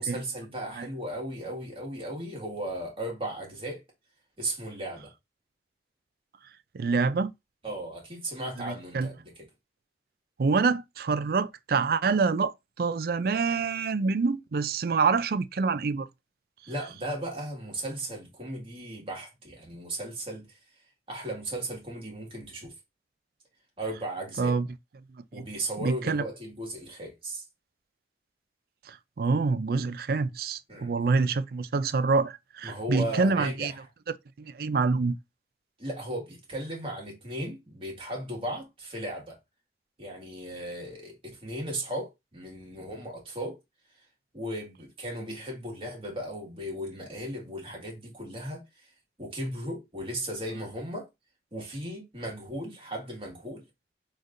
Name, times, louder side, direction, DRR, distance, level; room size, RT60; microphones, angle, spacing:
voice 1, 0.0-3.8 4.4-5.1 7.6-9.3 16.7-20.6 21.1-22.7 23.8-24.5 25.3-27.4 30.7-30.9 32.6-33.8 35.8-39.4 40.0-43.6 44.3-48.9 49.2-51.1 51.5-53.6, right 1 dB, 30° right, 1.9 m, -36 dB
voice 2, 6.7-7.3 8.6-9.1 10.4-16.1 24.4-24.7 25.3-25.5 25.8-26.2 28.9-33.7 34.4-35.2, right 4 dB, 55° right, 0.4 m, -26 dB
6.3 x 3.3 x 2.5 m
head